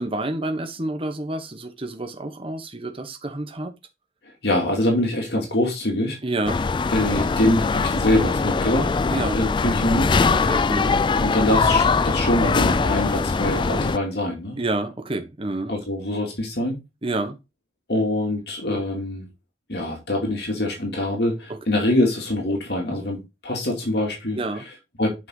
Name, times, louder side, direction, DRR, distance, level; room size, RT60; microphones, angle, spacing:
voice 1, 0.0-3.7 6.2-6.6 9.1-9.3 10.3-11.0 14.6-15.7 17.0-17.4 24.4-24.6, right 2 dB, 30° right, 1.3 m, -28 dB
voice 2, 4.4-6.2 6.9-10.1 11.2-14.6 15.7-16.8 17.9-19.2 19.7-24.7 25.0-25.1, left 1 dB, 65° left, 2.7 m, -24 dB
sound 1, 6.5-14.0, left 4 dB, 30° left, 0.3 m, -21 dB
7.7 x 5.8 x 3.9 m
head